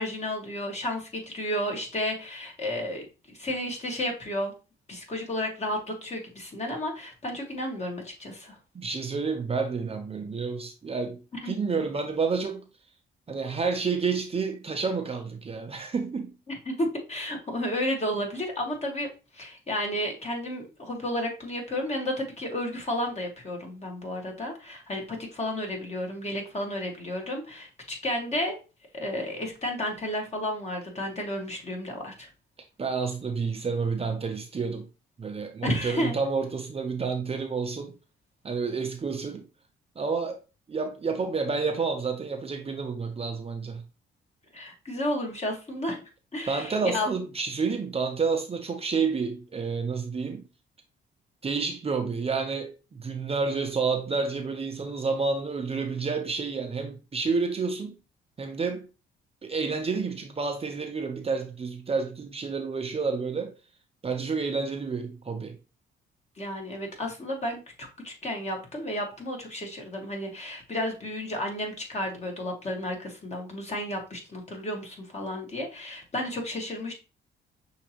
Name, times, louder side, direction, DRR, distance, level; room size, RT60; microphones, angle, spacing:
voice 1, 0.0-4.5 4.9-8.6 11.4-11.6 16.7-19.1 19.3-28.6 28.9-32.3 35.6-36.1 44.5-46.0 46.3-47.1 66.4-76.9, left 1 dB, 35° left, 1.8 m, -32 dB
voice 2, 8.7-12.6 13.3-16.4 32.8-34.9 35.2-37.9 38.4-39.4 40.0-40.4 40.7-43.8 46.5-50.5 51.4-57.9 58.4-58.9 59.4-63.5 64.0-65.5, right 4 dB, 30° right, 0.7 m, -29 dB
6.2 x 2.9 x 2.9 m
cardioid pair, 90°, 20 cm